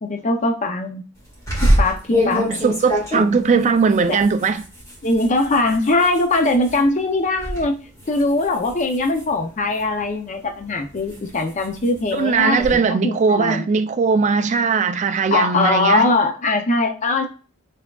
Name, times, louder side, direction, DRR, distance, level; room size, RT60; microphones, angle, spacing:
voice 1, 0.0-1.0 1.8-2.4 3.2-3.8 4.1-4.2 5.0-13.7 15.3-17.3, left 2 dB, 35° left, 0.5 m, -21 dB
sound 1, 1.5-6.8 7.2-7.6 8.0-10.0 10.6-12.7, equal, 15° left, 1.7 m, -25 dB
voice 2, 2.1-4.6 12.1-16.1, right 5 dB, 35° right, 0.3 m, -19 dB
5.8 x 3.5 x 2.3 m
head